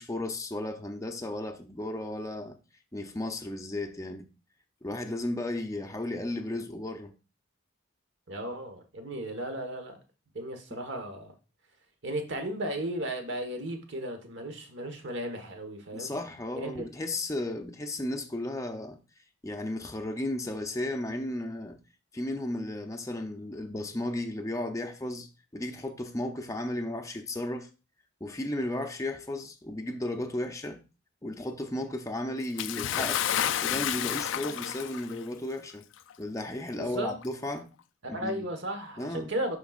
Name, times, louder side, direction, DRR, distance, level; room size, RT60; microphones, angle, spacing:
voice 1, 0.0-2.6 2.9-4.3 4.8-7.1 10.7-10.8 15.9-19.0 19.4-21.8 22.1-27.7 28.2-30.8 31.2-33.3 33.6-35.8 36.2-37.7 38.1-38.5 39.0-39.3, left 1 dB, 15° left, 0.6 m, -34 dB
voice 2, 8.3-10.0 10.3-11.3 12.0-16.2 16.5-16.9 36.7-37.1 38.0-39.6, right 1 dB, 60° right, 1.3 m, -35 dB
Bathtub (filling or washing) / Splash splatter, 32.6-35.2 36.1-36.2 37.2-37.3, left 10 dB, 65° left, 0.3 m, -30 dB
11.5 x 3.9 x 2.4 m
head